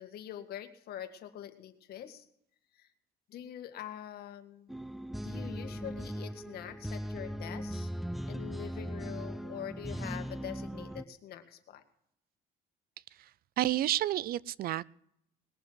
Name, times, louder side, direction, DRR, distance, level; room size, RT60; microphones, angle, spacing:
voice 1, 0.0-2.3 2.8-2.9 3.3-4.7 5.2-7.9 8.3-11.8, left 10 dB, 65° left, 8 dB, 2.0 m, -44 dB
sound 1, 4.7-11.0, equal, ahead, 0.5 m, -39 dB
voice 2, 13.6-14.8, right 13 dB, 60° right, 23 dB, 0.5 m, -30 dB
20.5 x 7.3 x 8.0 m, 0.73 s
cardioid pair, 110°, 17 cm